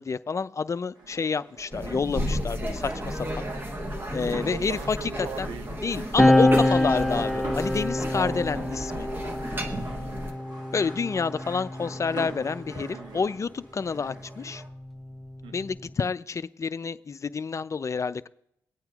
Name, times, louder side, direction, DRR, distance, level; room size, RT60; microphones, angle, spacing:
voice 1, 0.0-3.4 4.1-5.5 5.8-9.1 10.7-14.6 15.5-18.3, left 5 dB, 35° left, 15 dB, 0.4 m, -29 dB
sound 1, 1.0-14.7, right 1 dB, 55° right, 1.9 m, -42 dB
sound 2, 1.7-10.3, equal, 25° right, 1.2 m, -33 dB
voice 2, 3.4-4.1 4.5-6.1 8.1-8.5 10.0-10.2 12.6-13.3 15.4-15.6, right 7 dB, 80° right, 11 dB, 0.5 m, -41 dB
sound 3, 6.2-13.1 14.1-15.9, left 1 dB, ahead, 0.8 m, -27 dB
21.5 x 8.7 x 2.4 m, 0.77 s
supercardioid pair, 55°, 8 cm